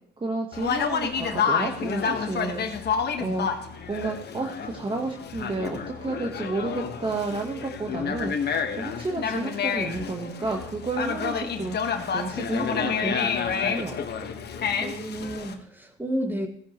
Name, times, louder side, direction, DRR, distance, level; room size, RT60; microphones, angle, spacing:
voice 1, 0.2-2.6 3.2-3.5 3.9-14.0, right 3 dB, 25° right, 2 dB, 1.2 m, -31 dB
Conversation, 0.5-15.5, left 6 dB, 55° left, 1.4 m, -29 dB
voice 2, 14.8-16.5, equal, 10° right, 4 dB, 1.9 m, -31 dB
15.5 x 10.0 x 3.1 m, 0.64 s
cardioid pair, 90°, 20 cm